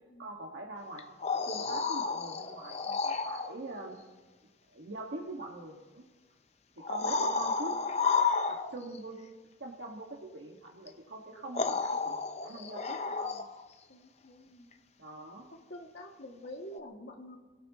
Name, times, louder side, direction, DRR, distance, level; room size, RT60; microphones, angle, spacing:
voice 1, 0.2-1.0 1.3-4.0 4.7-6.0 6.9-7.7 8.5-9.2 9.6-12.2 12.4-13.5 15.0-15.5, right 2 dB, 75° right, -1 dB, 1.8 m, -43 dB
sound 1, 1.0-3.5 5.4-5.5 6.8-9.0 10.9-11.0 11.5-13.7 16.7-16.8, left 4 dB, 35° left, 0.7 m, -31 dB
voice 2, 13.9-14.7 15.7-17.4, left 1 dB, 65° left, 0 dB, 2.4 m, -47 dB
27.0 x 17.0 x 3.1 m, 1.3 s
head